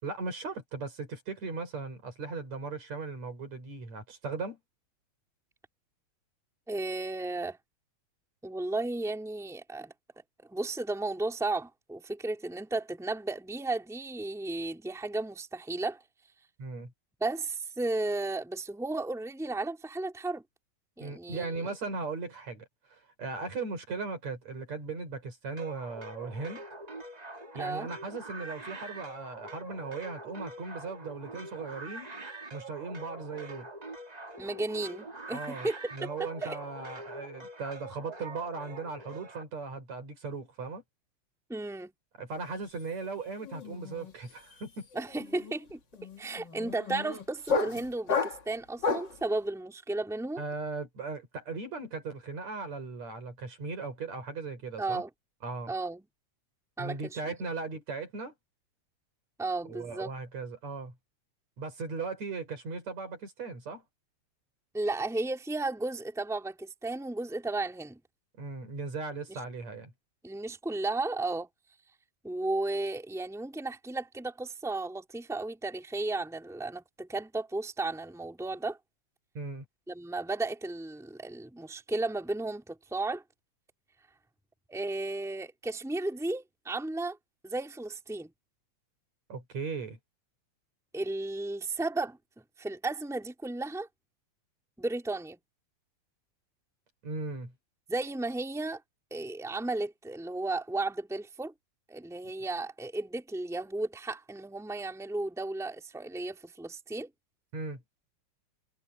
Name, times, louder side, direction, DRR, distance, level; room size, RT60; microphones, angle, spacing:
voice 1, 0.0-4.6 16.6-16.9 21.0-26.6 27.5-32.1 32.5-33.7 35.3-40.8 42.2-44.9 50.4-55.0 55.4-55.7 56.8-58.3 59.6-60.9 61.6-63.8 68.4-69.9 79.3-79.6 89.3-90.0 97.0-97.5 107.5-107.8, right 4 dB, 65° right, 6.6 m, -38 dB
voice 2, 6.7-7.6 8.4-9.9 10.5-16.0 17.2-20.4 21.0-21.5 27.6-27.9 34.4-36.1 36.4-36.6 41.5-41.9 44.9-45.8 46.2-50.4 54.8-55.1 55.7-56.1 56.8-57.0 59.4-60.1 64.7-68.0 69.3-69.4 70.2-71.5 72.2-78.8 79.9-83.2 84.7-87.2 87.4-88.3 90.9-92.2 92.6-93.9 94.8-95.4 97.9-98.8 99.1-101.5 101.9-107.1, right 2 dB, ahead, 3.2 m, -34 dB
sound 1, 25.6-39.4, right 2 dB, 25° right, 0.9 m, -44 dB
sound 2, 42.4-42.7 43.0-49.2, left 4 dB, 40° left, 2.6 m, -33 dB
omnidirectional pair, 3.3 m